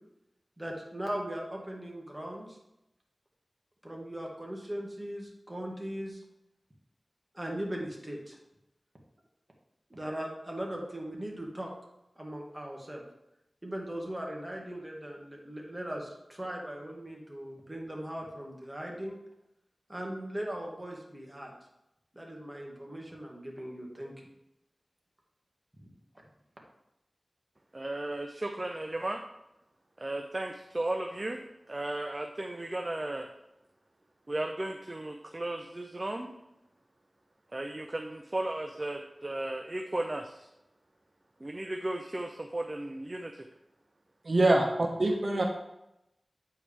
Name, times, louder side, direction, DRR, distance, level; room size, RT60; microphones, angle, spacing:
voice 1, 0.6-2.6 3.8-6.2 7.3-8.4 9.9-11.7 12.2-13.0 13.6-19.2 19.9-21.5 22.1-24.1, right 1 dB, 20° right, -1 dB, 1.9 m, -39 dB
voice 2, 27.7-29.2 30.0-33.3 34.3-36.3 37.5-40.5 41.4-43.4, right 1 dB, 40° right, 4 dB, 0.6 m, -35 dB
voice 3, 44.2-45.4, right 2 dB, 70° right, 1 dB, 1.0 m, -25 dB
8.5 x 4.7 x 3.4 m, 0.87 s
cardioid pair, 45°, 0 cm